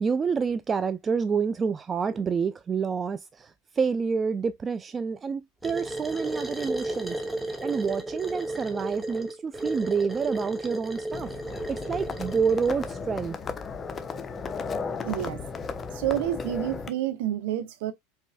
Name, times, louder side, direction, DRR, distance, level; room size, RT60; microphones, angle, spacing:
voice 1, 0.0-7.2 7.6-11.3 11.7-13.4, right 5 dB, 25° right, 0.4 m, -28 dB
sound 1, 5.6-12.7, right 1 dB, 5° right, 1.2 m, -34 dB
Livestock farm animals working animals, 11.1-16.9, left 5 dB, 25° left, 0.9 m, -35 dB
voice 2, 15.0-15.4 15.9-17.9, right 12 dB, 60° right, 1.0 m, -29 dB
5.2 x 4.1 x 2.2 m
figure-of-eight pair, 80°, 0 cm